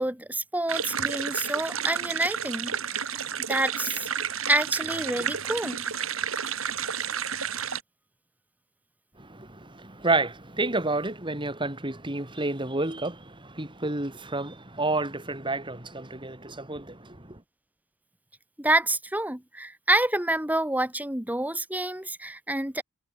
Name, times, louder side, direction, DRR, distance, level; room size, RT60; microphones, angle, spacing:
voice 1, 0.0-3.2 3.5-4.1 4.5-5.9 18.6-22.8, right 1 dB, 10° right, 2.4 m, -28 dB
sound 1, 0.7-7.8, right 7 dB, 90° right, 4.9 m, -31 dB
voice 2, 9.2-17.4, right 2 dB, 25° right, 3.5 m, -30 dB
head